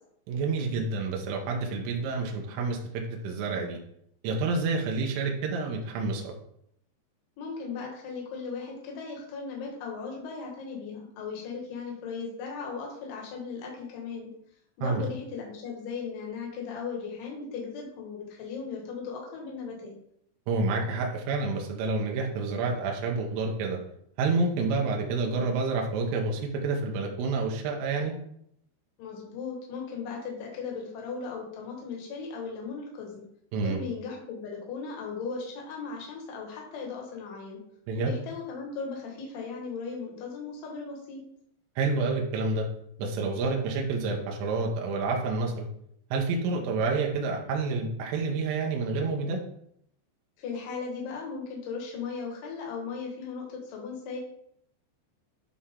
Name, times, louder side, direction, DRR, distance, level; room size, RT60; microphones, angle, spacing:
voice 1, 0.3-3.8 4.2-6.3 14.8-15.0 20.5-23.8 24.2-28.1 33.5-33.8 37.9-38.1 41.8-42.7 43.0-45.7 46.1-49.4, right 3 dB, 85° right, 1 dB, 3.6 m, -28 dB
voice 2, 7.4-14.3 14.8-20.0 29.0-33.2 33.6-37.6 38.0-41.2 50.4-54.2, left 5 dB, 55° left, -1 dB, 2.7 m, -37 dB
11.0 x 4.2 x 3.7 m, 0.72 s
omnidirectional pair, 5.5 m